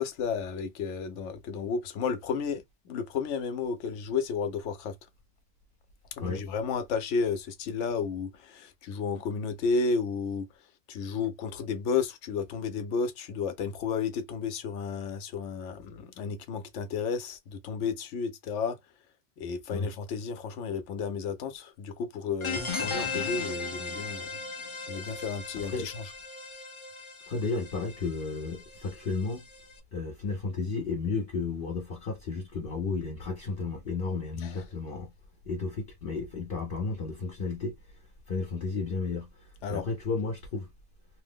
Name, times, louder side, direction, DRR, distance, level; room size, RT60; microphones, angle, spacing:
voice 1, 0.0-4.9 6.1-10.5 10.9-18.8 19.4-24.3 24.8-26.0 34.4-34.6 39.6-39.8, left 5 dB, 80° left, 0.9 m, -32 dB
sound 1, 22.4-29.7, left 4 dB, 40° left, 0.4 m, -37 dB
voice 2, 25.6-25.9 27.3-29.4 29.9-35.1 35.5-38.0 38.3-40.7, left 4 dB, 55° left, 0.8 m, -33 dB
2.8 x 2.0 x 3.5 m
omnidirectional pair, 1.2 m